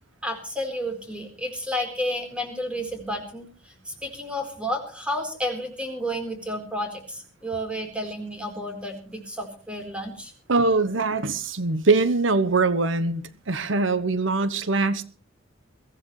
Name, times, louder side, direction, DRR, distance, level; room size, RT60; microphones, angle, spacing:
voice 1, 0.2-10.3, equal, 5° right, 4 dB, 4.2 m, -31 dB
voice 2, 10.5-15.0, right 3 dB, 70° right, 14 dB, 1.1 m, -22 dB
22.0 x 15.5 x 3.2 m, 0.40 s
head